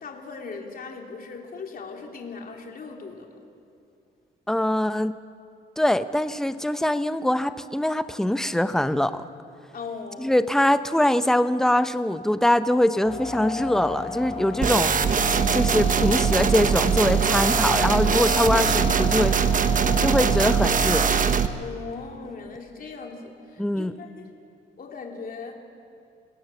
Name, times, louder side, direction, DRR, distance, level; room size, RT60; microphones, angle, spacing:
voice 1, 0.0-3.3 9.7-10.3 18.8-19.2 21.6-24.3 24.8-25.5, left 4 dB, 45° left, 1 dB, 3.4 m, -38 dB
voice 2, 4.5-5.1 5.8-9.2 10.2-14.9 15.5-19.3 20.0-21.1 23.6-23.9, left 1 dB, ahead, 11 dB, 0.9 m, -23 dB
sound 1, 13.0-21.2, left 4 dB, 30° left, 6.3 m, -33 dB
sound 2, 14.6-21.5, right 7 dB, 40° right, 1.2 m, -22 dB
28.0 x 17.5 x 7.2 m, 2.5 s
cardioid pair, 90°, 20 cm